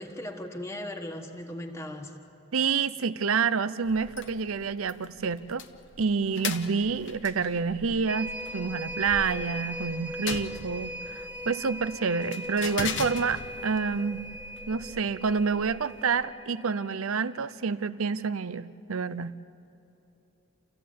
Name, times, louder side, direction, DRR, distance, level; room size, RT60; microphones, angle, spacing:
voice 1, 0.0-2.2, left 1 dB, 15° left, 2 dB, 1.4 m, -38 dB
voice 2, 2.5-5.6 6.0-14.2 14.7-19.3, right 5 dB, 70° right, 15 dB, 0.6 m, -28 dB
sound 1, 3.8-16.2, left 5 dB, 55° left, 1.0 m, -41 dB
sound 2, 8.1-17.8 18.2-18.3, equal, 10° right, 1.1 m, -39 dB
28.5 x 15.0 x 8.5 m, 2.8 s
head